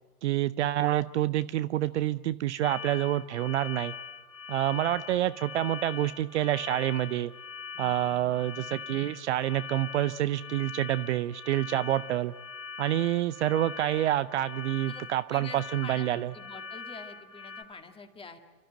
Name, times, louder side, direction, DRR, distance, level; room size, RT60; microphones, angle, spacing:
voice 1, 0.2-3.9 4.5-7.3 7.8-12.3 12.8-16.3, right 13 dB, 50° right, 14 dB, 0.6 m, -28 dB
sound 1, 2.6-17.6, left 6 dB, 60° left, 2.3 m, -42 dB
voice 2, 7.7-8.4 11.7-11.8 14.9-15.0 15.3-18.4, left 4 dB, 10° left, 6 dB, 1.9 m, -47 dB
29.5 x 12.5 x 8.9 m, 1.3 s
figure-of-eight pair, 100°, 46 cm